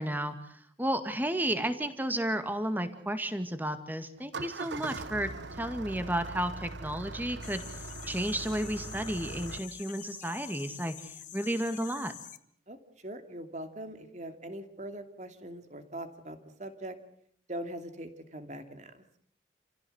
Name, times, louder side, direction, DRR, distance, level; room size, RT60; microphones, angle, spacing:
voice 1, 0.0-5.3 5.6-7.6 8.1-12.1, right 1 dB, 10° right, 8 dB, 2.1 m, -32 dB
Engine starting, 4.2-9.6, right 3 dB, 85° right, 1.1 m, -41 dB
sound 1, 7.4-12.4, left 11 dB, 45° left, 1.4 m, -47 dB
voice 2, 12.7-17.0 17.5-18.9, right 1 dB, 40° right, 7 dB, 2.7 m, -42 dB
29.0 x 16.5 x 8.1 m, 0.67 s
head